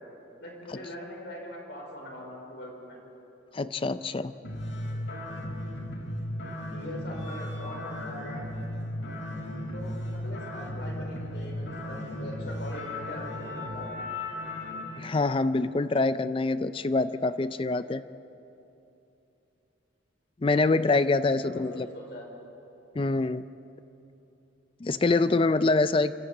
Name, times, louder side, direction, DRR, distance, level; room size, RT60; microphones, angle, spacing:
voice 1, 0.4-3.0 6.7-8.6 9.7-13.2 13.5-14.0 21.4-22.3, left 1 dB, 65° left, 0 dB, 5.1 m, -42 dB
voice 2, 3.5-4.3 15.0-18.0 20.4-21.9 22.9-23.4 24.8-26.1, left 3 dB, 30° left, 13 dB, 0.4 m, -25 dB
sound 1, 4.4-15.0, left 1 dB, 80° left, 4.7 m, -36 dB
26.0 x 14.0 x 8.7 m, 2.9 s
head